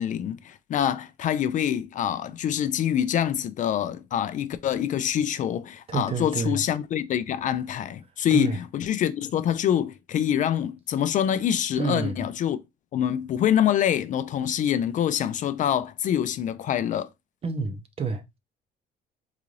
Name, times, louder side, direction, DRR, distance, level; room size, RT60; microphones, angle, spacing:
voice 1, 0.0-12.6 12.9-17.1, left 10 dB, 50° left, 0.4 m, -25 dB
voice 2, 5.9-6.6 8.3-8.6 11.8-12.3 17.4-18.4, right 5 dB, 35° right, 0.7 m, -29 dB
3.9 x 2.4 x 3.1 m
cardioid pair, 110°, 17 cm